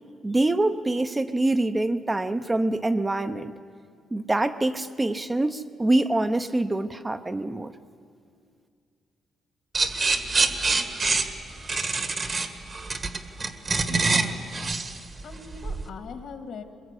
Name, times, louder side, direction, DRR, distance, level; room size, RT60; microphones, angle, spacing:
voice 1, 0.2-3.5 4.1-7.7, right 2 dB, 20° right, 8 dB, 0.8 m, -25 dB
sound 1, 9.7-15.9, right 3 dB, 40° right, 1.6 m, -26 dB
voice 2, 13.9-14.7 15.2-16.6, left 5 dB, 70° left, 6 dB, 2.2 m, -40 dB
22.0 x 21.5 x 8.4 m, 2.2 s
cardioid pair, 90°, 0 cm